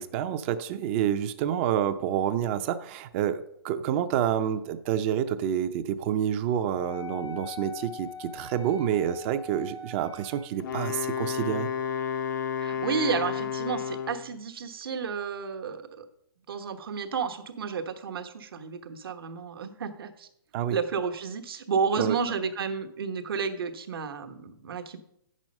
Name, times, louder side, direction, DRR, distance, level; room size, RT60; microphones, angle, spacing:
voice 1, 0.0-11.7 20.5-20.8 22.0-22.2, right 10 dB, 30° right, 11 dB, 0.5 m, -28 dB
Wind instrument woodwind instrument, 6.7-10.6, left 4 dB, 80° left, 1.7 m, -42 dB
Wind instrument woodwind instrument 2, 10.6-14.3, left 8 dB, 55° left, 0.6 m, -31 dB
voice 2, 12.6-16.1 16.5-20.3 20.7-25.0, right 6 dB, 75° right, 6 dB, 1.1 m, -31 dB
8.6 x 6.2 x 5.3 m, 0.75 s
hypercardioid pair, 150°, 12 cm